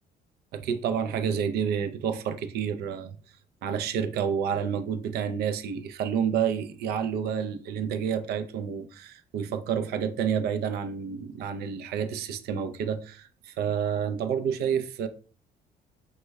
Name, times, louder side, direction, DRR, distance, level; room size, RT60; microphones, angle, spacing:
voice 1, 0.5-3.2 3.6-15.1, right 7 dB, 70° right, 0.4 m, -29 dB
3.2 x 2.2 x 3.2 m
cardioid pair, 110°, 17 cm